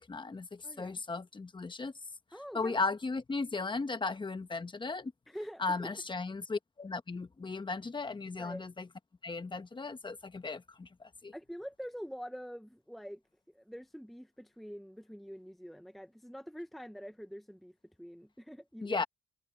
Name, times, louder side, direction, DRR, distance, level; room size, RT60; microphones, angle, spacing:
voice 1, 0.0-1.9 2.5-5.1 5.6-8.9 9.2-11.3 18.8-19.0, left 3 dB, 25° left, 1.3 m, -36 dB
voice 2, 0.6-1.0 2.3-2.8 5.3-6.0 8.4-8.7 11.3-13.2 13.5-19.0, equal, ahead, 0.9 m, -45 dB
cardioid pair, 90°, 20 cm